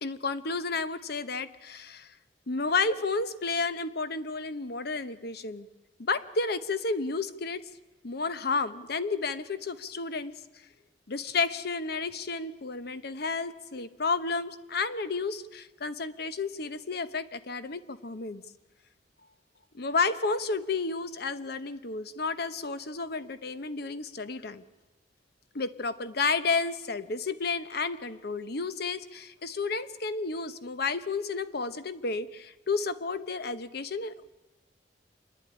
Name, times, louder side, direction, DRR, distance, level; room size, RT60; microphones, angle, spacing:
voice 1, 0.0-2.1 2.5-5.7 6.0-7.6 8.0-10.3 11.1-18.4 19.7-24.6 25.5-34.2, left 4 dB, 60° left, 12 dB, 1.0 m, -31 dB
27.5 x 10.5 x 9.7 m, 1.1 s
head